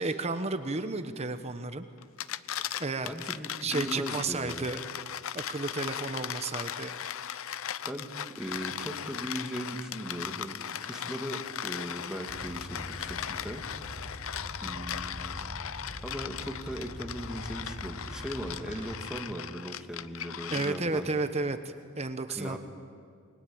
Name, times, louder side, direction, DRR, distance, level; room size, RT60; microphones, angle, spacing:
voice 1, 0.0-1.9 2.8-3.1 3.6-4.8 5.3-6.9 20.5-21.6 22.0-22.6, right 3 dB, 30° right, 9 dB, 1.1 m, -32 dB
sound 1, 2.0-21.0, left 9 dB, 80° left, 0.7 m, -38 dB
voice 2, 3.0-4.7 7.8-13.6 14.6-15.5 16.0-21.1 22.3-22.6, equal, 5° right, 3 dB, 2.1 m, -38 dB
sound 2, 12.3-19.0, equal, 35° left, 4.3 m, -43 dB
28.5 x 21.5 x 8.7 m, 2.1 s
head